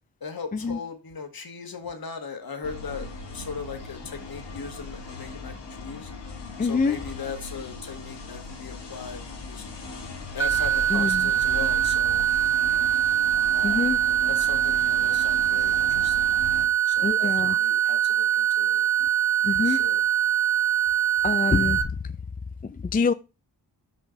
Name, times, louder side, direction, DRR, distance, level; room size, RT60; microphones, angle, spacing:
voice 1, 0.2-6.1 6.6-9.2 9.5-9.8 10.3-12.3 12.6-13.0 13.5-18.9 19.6-20.0, left 5 dB, 55° left, 1.7 m, -39 dB
sound 1, 2.6-16.7, left 3 dB, 70° left, 1.8 m, -39 dB
voice 2, 6.6-7.0 10.9-11.3 13.6-14.0 17.0-17.6 19.4-19.8 21.2-21.8 22.6-23.1, left 5 dB, 20° left, 0.4 m, -25 dB
sound 2, 10.4-21.8, right 11 dB, 5° right, 0.9 m, -23 dB
6.7 x 5.1 x 5.1 m
cardioid pair, 55°, 44 cm